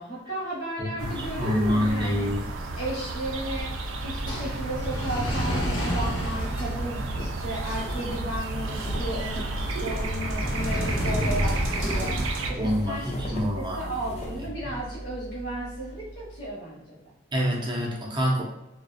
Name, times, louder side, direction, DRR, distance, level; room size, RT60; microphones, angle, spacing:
voice 1, 0.0-2.3 2.8-3.7 4.0-17.0, right 1 dB, 60° left, -8 dB, 0.8 m, -34 dB
voice 2, 1.0-2.4 12.5-13.8 17.3-18.4, equal, 25° right, -2 dB, 0.5 m, -26 dB
sound 1, 1.0-12.5, right 2 dB, 80° right, 0.3 m, -32 dB
sound 2, 3.1-16.2, equal, 85° left, 1.0 m, -33 dB
sound 3, 7.1-14.5, left 1 dB, 35° left, 0.4 m, -40 dB
2.4 x 2.0 x 2.5 m, 0.92 s
head